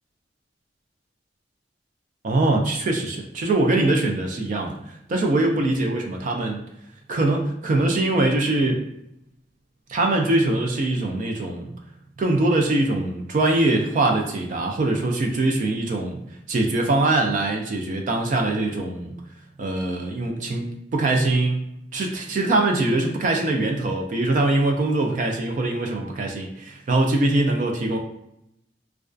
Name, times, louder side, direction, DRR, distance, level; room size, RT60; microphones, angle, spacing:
voice 1, 2.2-4.7 5.1-6.6 7.1-8.8 9.9-11.7 12.2-16.2 16.5-19.1 19.6-21.6 21.9-28.0, right 2 dB, 45° right, 2 dB, 0.3 m, -22 dB
2.3 x 2.3 x 2.4 m, 0.81 s
head